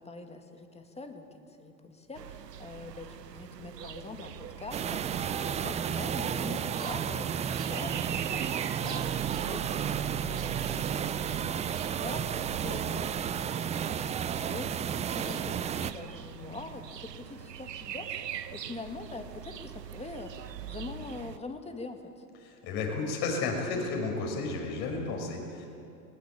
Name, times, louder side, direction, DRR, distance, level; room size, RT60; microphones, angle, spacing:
voice 1, 0.0-22.3, left 3 dB, 15° left, 5 dB, 2.2 m, -44 dB
sound 1, 2.2-21.4, right 10 dB, 90° right, 1.0 m, -42 dB
sound 2, 4.7-15.9, right 8 dB, 15° right, 0.5 m, -32 dB
voice 2, 22.4-25.7, left 3 dB, 50° left, 2 dB, 6.2 m, -32 dB
19.5 x 19.5 x 8.7 m, 2.5 s
hypercardioid pair, 105°, 48 cm